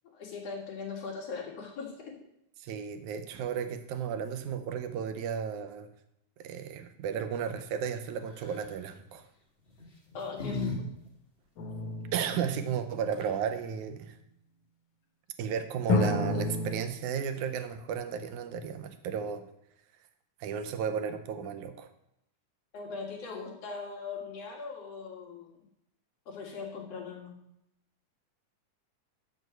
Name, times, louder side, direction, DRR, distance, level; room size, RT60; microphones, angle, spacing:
voice 1, 0.1-2.1 10.1-10.7 22.7-25.6 26.3-27.3, left 5 dB, 55° left, -1 dB, 2.7 m, -40 dB
voice 2, 2.6-5.9 6.4-9.3 12.1-14.2 15.4-19.4 20.4-21.9, right 7 dB, 80° right, 8 dB, 2.2 m, -34 dB
sound 1, 8.3-8.7 9.7-10.8 11.1-11.2 12.8-12.9 13.1-13.5, left 4 dB, 35° left, 1.0 m, -36 dB
sound 2, 11.6-13.4 15.9-16.8, left 2 dB, 80° left, 2.4 m, -31 dB
7.1 x 6.3 x 7.8 m, 0.79 s
omnidirectional pair, 3.5 m